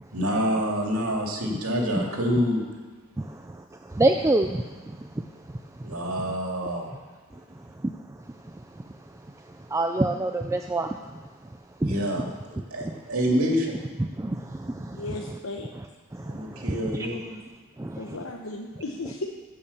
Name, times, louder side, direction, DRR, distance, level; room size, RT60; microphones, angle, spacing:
voice 1, 0.1-2.6 5.8-6.9 11.8-13.7 16.3-17.2, equal, 90° right, 0 dB, 2.4 m, -27 dB
voice 2, 4.0-4.6 9.7-10.9 11.8-11.9 14.2-14.3 16.7-16.8, right 2 dB, 15° right, 5 dB, 0.3 m, -23 dB
voice 3, 14.9-15.7 18.0-19.3, left 2 dB, 75° left, 1 dB, 0.9 m, -35 dB
15.5 x 5.6 x 7.0 m, 1.4 s
head